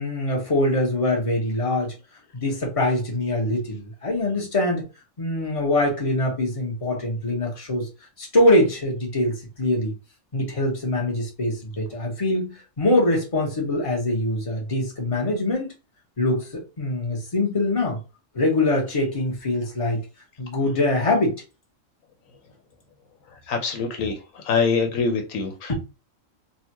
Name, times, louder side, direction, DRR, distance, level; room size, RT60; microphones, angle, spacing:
voice 1, 0.0-1.9 2.3-4.9 5.2-7.9 8.2-9.9 10.3-15.7 16.2-18.0 18.3-20.0 20.4-21.3 25.7-25.8, left 1 dB, 25° left, 1.2 m, -23 dB
voice 2, 23.5-24.2 24.5-25.7, left 5 dB, 85° left, 1.2 m, -24 dB
3.9 x 2.5 x 2.9 m
omnidirectional pair, 1.4 m